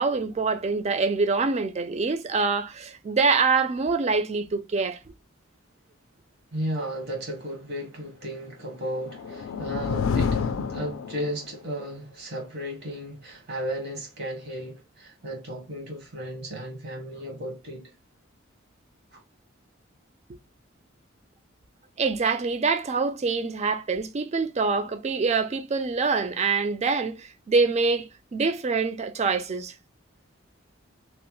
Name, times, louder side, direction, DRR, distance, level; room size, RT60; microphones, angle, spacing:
voice 1, 0.0-5.0 22.0-29.7, right 4 dB, 35° right, 0.4 m, -25 dB
voice 2, 6.5-17.9 19.1-19.2, equal, 55° right, 1.2 m, -34 dB
sound 1, 8.7-11.6, left 6 dB, 75° left, 0.3 m, -29 dB
3.0 x 2.1 x 3.0 m
head